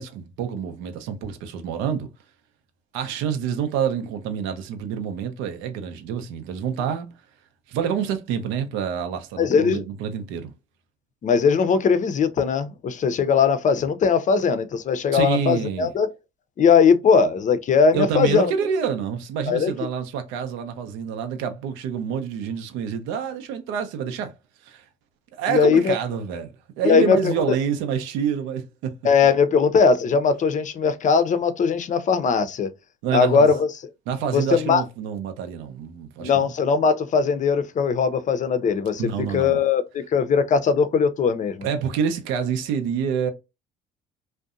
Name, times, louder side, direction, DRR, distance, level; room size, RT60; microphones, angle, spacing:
voice 1, 0.0-2.1 2.9-7.1 7.7-10.5 15.1-15.9 17.9-24.3 24.6-24.8 25.4-29.0 33.0-33.5 34.1-36.5 39.0-39.6 41.6-43.3, right 7 dB, 75° right, 0.6 m, -27 dB
voice 2, 9.4-9.8 11.2-16.1 16.6-18.5 19.5-19.7 25.5-26.0 26.8-27.3 29.0-32.7 33.1-33.7 34.3-34.8 36.2-41.7, left 6 dB, 40° left, 0.5 m, -20 dB
2.6 x 2.1 x 2.4 m
supercardioid pair, 70°, 20 cm